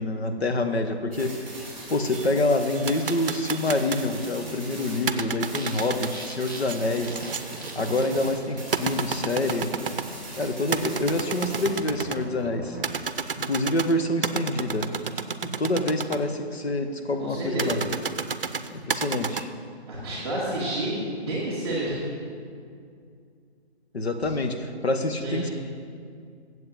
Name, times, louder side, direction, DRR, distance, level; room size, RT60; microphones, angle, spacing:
voice 1, 0.0-1.4 1.9-7.3 7.7-9.7 10.4-12.8 13.4-14.9 15.4-17.8 18.7-19.5 23.9-25.5, left 2 dB, 75° left, 6 dB, 1.1 m, -26 dB
sound 1, 1.1-5.1 5.4-11.8, right 2 dB, ahead, 1.9 m, -41 dB
sound 2, 2.1-4.1 5.0-10.2 10.7-12.2 12.8-16.2 17.6-19.4, right 6 dB, 55° right, 0.6 m, -31 dB
sound 3, 3.0-3.8 4.2-4.3 5.0-5.2 5.6-9.7 10.5-12.9, right 2 dB, 20° left, 0.7 m, -43 dB
voice 2, 17.2-17.8 19.9-20.9 21.3-22.0 24.2-24.3 25.2-25.5, right 1 dB, 15° right, -8 dB, 1.8 m, -29 dB
8.0 x 7.7 x 7.6 m, 2.3 s
hypercardioid pair, 180°, 32 cm